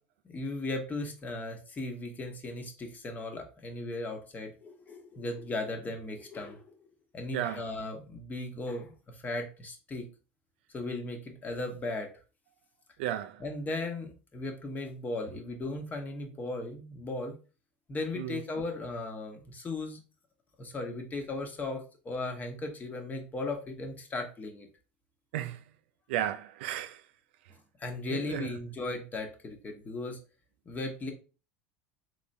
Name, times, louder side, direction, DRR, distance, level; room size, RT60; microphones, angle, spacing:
voice 1, 0.2-6.9 7.1-10.1 10.7-12.1 13.4-17.4 17.9-20.0 20.6-24.7 27.8-30.2 30.7-31.1, left 2 dB, 25° left, 1.0 m, -37 dB
voice 2, 13.0-13.4 18.2-18.4 25.3-25.6 26.1-27.0 28.1-28.5, right 11 dB, 75° right, 0.4 m, -33 dB
3.6 x 3.3 x 2.6 m
hypercardioid pair, 90°, 6 cm